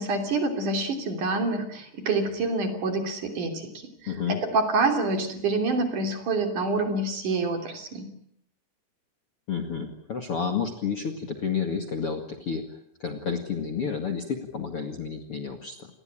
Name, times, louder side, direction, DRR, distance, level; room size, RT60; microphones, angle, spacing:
voice 1, 0.0-3.7 4.0-8.1, right 3 dB, 50° right, 6 dB, 4.3 m, -27 dB
voice 2, 4.1-4.4 9.5-12.6 13.0-15.9, left 6 dB, 40° left, 5 dB, 2.4 m, -30 dB
29.0 x 20.5 x 8.9 m, 0.67 s
omnidirectional pair, 4.9 m